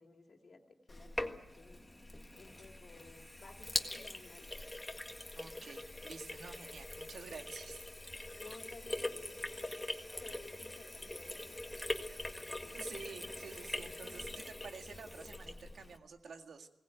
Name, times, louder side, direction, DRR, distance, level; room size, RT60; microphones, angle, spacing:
voice 1, 0.0-1.9 2.3-4.5 8.3-11.8, left 3 dB, 50° left, 3 dB, 2.9 m, -56 dB
Sink (filling or washing), 0.9-16.0, left 1 dB, 10° left, 1.7 m, -43 dB
voice 2, 5.3-7.9 12.7-16.7, right 5 dB, 85° right, 5 dB, 2.0 m, -50 dB
21.5 x 18.5 x 9.3 m, 0.87 s
wide cardioid pair, 175°, 0 cm